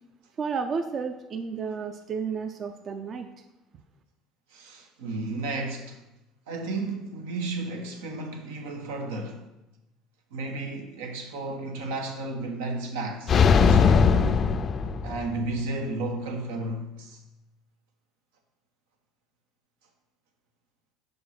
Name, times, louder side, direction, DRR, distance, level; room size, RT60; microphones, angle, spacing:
voice 1, 0.4-3.3, right 5 dB, 40° right, 0.5 m, -32 dB
voice 2, 4.5-6.0 6.5-9.4 10.3-14.5 15.0-17.2, right 2 dB, 90° right, 1.2 m, -33 dB
sound 1, 13.3-15.5, left 6 dB, 40° left, 0.4 m, -20 dB
5.4 x 4.7 x 5.8 m
supercardioid pair, 95°, 0 cm